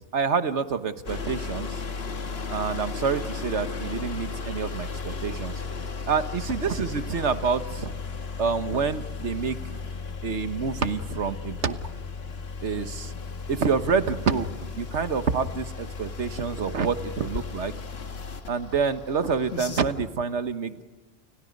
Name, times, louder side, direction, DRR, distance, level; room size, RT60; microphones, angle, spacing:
voice 1, 0.1-1.8 2.5-5.5 6.1-7.9 8.4-9.6 10.2-11.8 12.6-13.1 13.5-14.5 14.8-17.7 18.5-20.8, right 5 dB, 75° right, 10 dB, 1.5 m, -27 dB
sound 1, 1.1-19.8, left 4 dB, 60° left, 1.7 m, -35 dB
30.0 x 30.0 x 5.3 m, 1.2 s
omnidirectional pair, 1.2 m